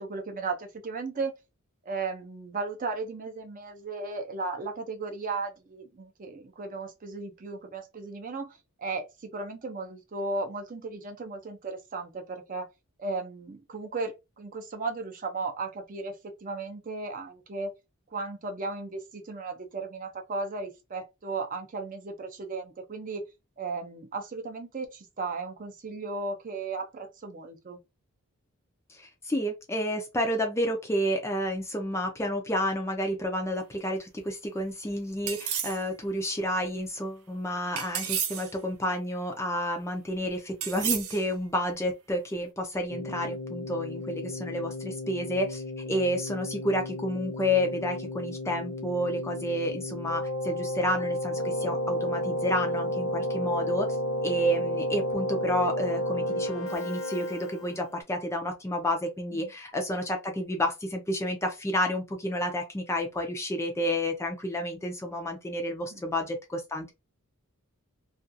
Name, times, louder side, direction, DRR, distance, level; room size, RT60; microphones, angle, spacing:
voice 1, 0.0-1.4 1.8-12.7 13.0-16.2 16.4-17.7 18.1-23.3 23.6-27.8 59.3-59.5 65.9-66.0, right 3 dB, 40° right, 0.5 m, -35 dB
voice 2, 28.9-66.9, equal, 15° left, 0.4 m, -30 dB
sound 1, 35.3-35.8 37.8-38.5 40.6-41.3, right 9 dB, 85° right, 0.6 m, -31 dB
Keyboard (musical), 42.9-58.0, left 1 dB, 65° left, 0.7 m, -32 dB
2.4 x 2.3 x 2.6 m
head